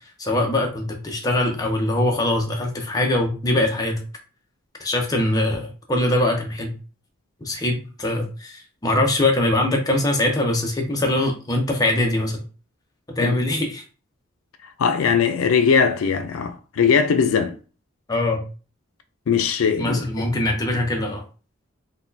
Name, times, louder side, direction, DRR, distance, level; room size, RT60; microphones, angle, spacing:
voice 1, 0.2-4.0 4.8-6.7 7.4-12.4 13.2-13.8 18.1-18.4 19.8-21.2, left 1 dB, 15° left, 0.6 m, -22 dB
voice 2, 14.8-17.6 19.3-20.0, left 6 dB, 80° left, 0.4 m, -20 dB
4.0 x 2.2 x 2.6 m
head